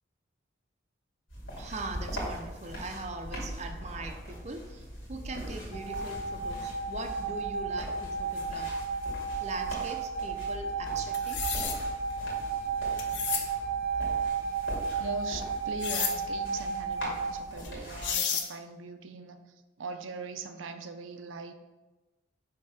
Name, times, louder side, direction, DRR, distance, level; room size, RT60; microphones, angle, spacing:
sound 1, 1.3-18.2, equal, 80° left, 2.2 m, -41 dB
voice 1, 1.6-8.8 9.4-11.6, right 2 dB, 35° right, 5 dB, 0.5 m, -41 dB
sound 2, 5.7-17.4, right 4 dB, 35° left, 1.2 m, -33 dB
sound 3, 11.1-11.8 13.0-13.4 15.8-16.1 17.6-17.7 18.0-18.5, left 7 dB, 65° left, 0.8 m, -31 dB
voice 2, 15.0-19.4 19.8-21.5, right 4 dB, 85° right, 7 dB, 0.5 m, -40 dB
5.5 x 3.7 x 5.7 m, 1.1 s
head